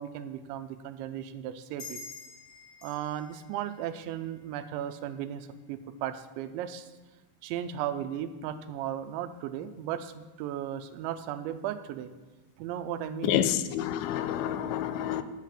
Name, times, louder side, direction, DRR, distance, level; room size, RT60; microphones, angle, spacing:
voice 1, 0.0-2.0 2.8-6.9 7.4-12.1 12.6-13.5, right 10 dB, 85° right, 9 dB, 2.9 m, -36 dB
sound 1, 1.8-4.9, left 4 dB, 30° left, 3.5 m, -48 dB
voice 2, 13.2-15.2, left 11 dB, 85° left, 11 dB, 3.0 m, -28 dB
9.8 x 7.5 x 7.4 m, 1.2 s
omnidirectional pair, 5.4 m